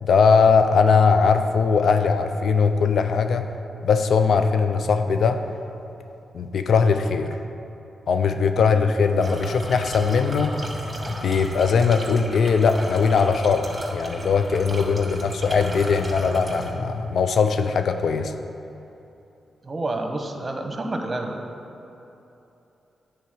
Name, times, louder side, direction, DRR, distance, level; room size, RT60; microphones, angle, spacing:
voice 1, 0.0-3.5 3.8-5.4 6.3-7.4 8.1-10.5 11.1-18.4, left 5 dB, 70° left, 8 dB, 0.6 m, -20 dB
sound 1, 9.2-16.7, equal, 25° right, 2.1 m, -33 dB
voice 2, 19.6-21.4, right 2 dB, 40° right, 4 dB, 1.2 m, -29 dB
9.5 x 4.7 x 6.2 m, 2.9 s
supercardioid pair, 45°, 0 cm